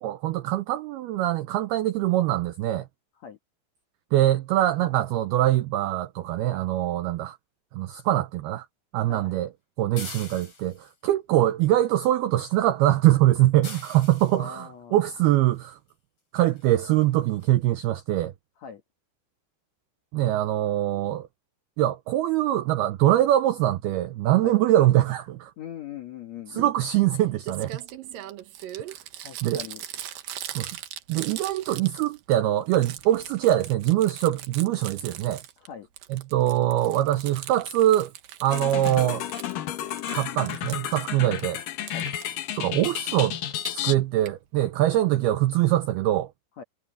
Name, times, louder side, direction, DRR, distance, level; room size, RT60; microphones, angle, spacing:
voice 1, 0.0-2.9 4.1-7.4 7.7-8.7 8.9-9.5 9.8-15.8 16.3-18.3 20.1-21.3 21.8-25.5 26.5-27.8 29.4-29.6 30.6-30.8 31.1-35.4 36.1-38.1 38.4-39.2 40.1-41.6 42.5-43.4 43.7-46.3, right 14 dB, 85° right, 2.2 m, -23 dB
voice 2, 9.1-9.4 14.3-15.1 18.6-18.8 24.4-24.6 25.6-26.7 29.2-29.8 35.6-35.9 41.9-42.1 46.6-46.7, left 8 dB, 80° left, 1.5 m, -41 dB
sound 1, 10.0-10.9 13.6-14.4 15.9-16.0 16.6-16.7 17.0-17.1 17.4-17.5, left 4 dB, 35° left, 6.0 m, -41 dB
Crumpling crinkling, 27.1-27.2 27.4-32.3 32.6-35.7 36.0-39.6 39.9-41.4 41.9-42.2 43.4-43.7 44.3-44.4 44.6-44.7 44.9-45.0, right 11 dB, 65° right, 2.3 m, -40 dB
sound 2, 38.5-43.9, left 11 dB, 60° left, 2.5 m, -32 dB
omnidirectional pair, 5.5 m